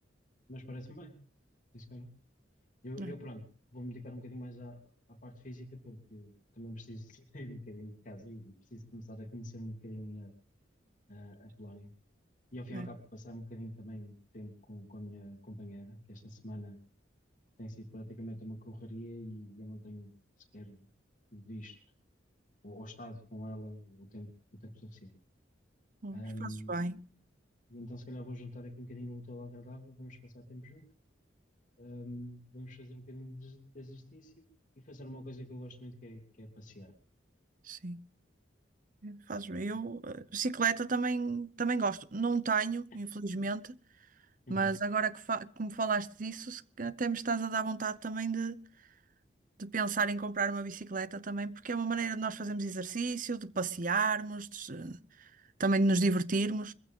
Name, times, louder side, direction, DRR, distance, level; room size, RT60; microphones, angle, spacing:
voice 1, 0.5-1.1 1.7-2.1 2.8-3.4 3.7-4.8 5.1-10.3 11.1-11.9 12.5-16.8 17.6-20.1 20.5-20.8 21.3-21.8 22.6-24.3 24.6-25.1 26.1-26.8 27.7-30.8 31.8-34.4 34.7-36.9 44.5-44.7, equal, 45° left, 3.2 m, -45 dB
voice 2, 26.0-27.0 37.7-38.0 39.0-43.8 44.5-48.6 49.6-55.0 55.6-56.7, right 4 dB, 45° right, 0.8 m, -32 dB
22.5 x 15.5 x 3.7 m
head